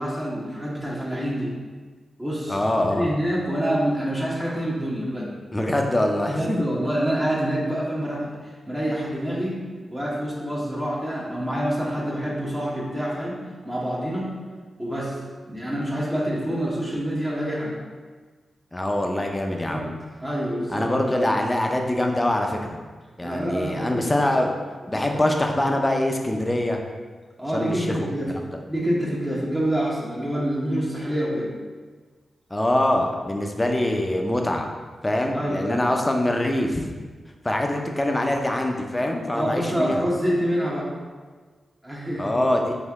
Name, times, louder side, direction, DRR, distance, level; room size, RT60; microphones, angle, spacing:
voice 1, 0.0-1.5 2.2-2.6 2.9-5.3 6.3-8.3 8.7-9.6 9.9-13.3 13.6-14.4 14.8-15.2 15.5-17.8 19.7-19.9 20.2-20.9 21.2-21.4 23.2-24.0 25.1-25.2 27.4-28.3 28.7-31.5 35.3-35.8 39.3-40.9 41.8-42.4, equal, 15° right, -6 dB, 1.2 m, -26 dB
voice 2, 2.5-3.1 5.5-6.6 18.7-19.9 20.7-22.8 23.2-24.5 24.9-26.8 27.5-27.9 28.3-28.5 32.5-34.7 35.0-36.8 37.4-40.0 42.2-42.8, left 1 dB, 20° left, 3 dB, 0.6 m, -24 dB
4.3 x 2.7 x 3.5 m, 1.4 s
supercardioid pair, 40°, 0 cm